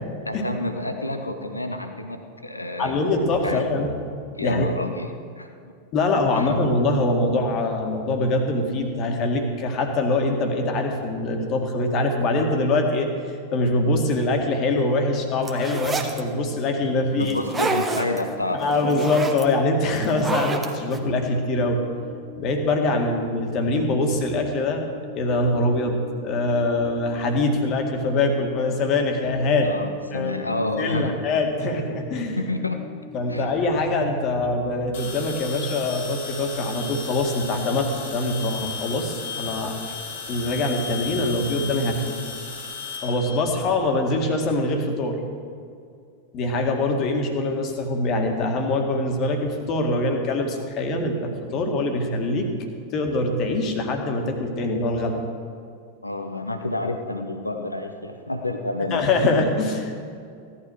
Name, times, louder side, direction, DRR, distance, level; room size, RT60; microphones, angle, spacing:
voice 1, 0.2-2.9 3.4-3.7 4.3-5.1 5.4-5.5 6.3-6.5 17.2-18.9 29.6-31.2 32.4-32.8 33.3-33.5 56.0-59.0, left 2 dB, 85° left, 6 dB, 1.0 m, -29 dB
voice 2, 2.8-4.0 4.4-4.7 5.9-17.4 18.6-21.8 22.4-24.9 25.1-29.8 30.1-30.3 30.8-32.4 33.1-39.8 40.3-42.2 43.0-45.2 46.3-52.5 52.9-55.2 58.9-60.0, left 2 dB, 35° left, 4 dB, 2.0 m, -23 dB
sound 1, 15.4-16.2 17.3-18.2 18.6-19.4 20.0-21.0, right 3 dB, 15° right, 1.4 m, -27 dB
sound 2, 17.9-33.6, left 4 dB, 50° right, 2.3 m, -44 dB
sound 3, 34.9-44.2, left 5 dB, 60° left, 1.9 m, -35 dB
16.5 x 12.0 x 4.8 m, 2.4 s
figure-of-eight pair, 90°, 0 cm